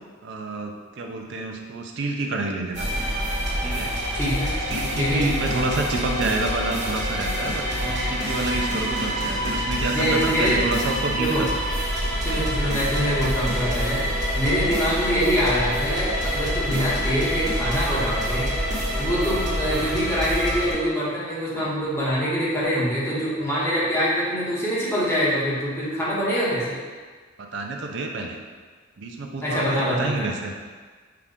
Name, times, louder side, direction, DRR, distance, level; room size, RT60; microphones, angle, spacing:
voice 1, 0.2-2.9 3.6-3.9 4.7-11.6 12.3-12.4 27.4-28.4 29.0-30.5, right 2 dB, 60° right, 2 dB, 0.5 m, -28 dB
sound 1, 2.7-20.7, equal, 40° right, 1.2 m, -26 dB
voice 2, 4.1-4.5 5.0-5.2 9.9-10.6 11.2-11.5 12.2-14.0 14.3-18.5 19.0-26.7 29.4-30.3, equal, 10° left, -9 dB, 1.2 m, -24 dB
5.7 x 2.5 x 3.5 m, 1.5 s
head